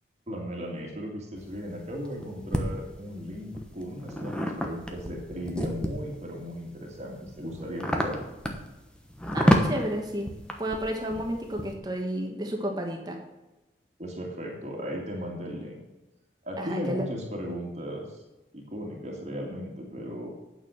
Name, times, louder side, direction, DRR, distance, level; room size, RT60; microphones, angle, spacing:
voice 1, 0.3-8.2 14.0-15.8 16.4-18.2 18.5-20.3, equal, 40° right, -2 dB, 2.0 m, -36 dB
sound 1, 1.4-2.6 3.3-6.2 6.7-11.7, equal, 5° left, 1.0 m, -29 dB
voice 2, 9.3-10.3 10.6-13.2 16.6-17.0, right 1 dB, 20° right, 2 dB, 1.3 m, -31 dB
9.0 x 6.7 x 6.4 m, 1.1 s
head